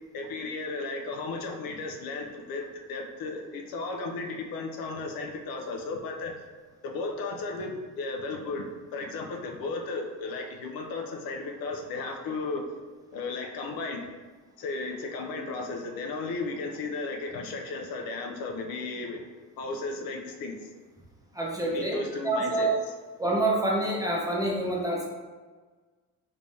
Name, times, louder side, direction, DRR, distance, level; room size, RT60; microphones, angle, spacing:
voice 1, 0.1-6.3 6.8-8.7 8.9-12.6 13.1-14.1 14.6-19.2 19.6-20.7 21.7-22.7, left 3 dB, 65° left, 2 dB, 0.6 m, -34 dB
voice 2, 21.3-22.7 23.2-25.1, right 2 dB, 10° right, -3 dB, 0.6 m, -27 dB
3.3 x 3.3 x 2.6 m, 1.4 s
cardioid pair, 115°, 37 cm